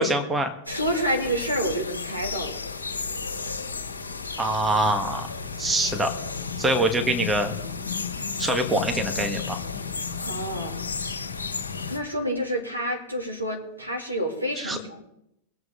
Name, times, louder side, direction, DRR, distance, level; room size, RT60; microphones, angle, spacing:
voice 1, 0.0-0.5 4.4-5.3 5.6-6.1 6.6-7.5 8.4-9.6 14.6-14.8, right 1 dB, 10° right, 5 dB, 1.7 m, -24 dB
sound 1, 0.7-12.0, left 5 dB, 75° left, 1.8 m, -33 dB
voice 2, 0.7-2.6 10.2-10.8 11.9-15.0, equal, 90° right, 0 dB, 2.6 m, -28 dB
23.5 x 7.9 x 3.8 m, 0.81 s
figure-of-eight pair, 90°, 0 cm